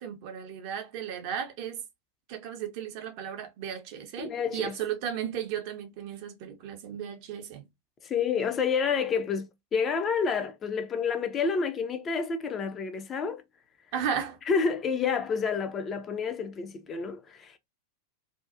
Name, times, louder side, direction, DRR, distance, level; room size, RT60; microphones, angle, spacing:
voice 1, 0.0-1.8 2.3-7.6 13.9-14.4, right 8 dB, 45° right, 0.6 m, -35 dB
voice 2, 4.2-4.7 8.0-13.4 14.5-17.6, left 5 dB, 25° left, 0.4 m, -29 dB
2.5 x 2.2 x 2.4 m
figure-of-eight pair, 90°, 0 cm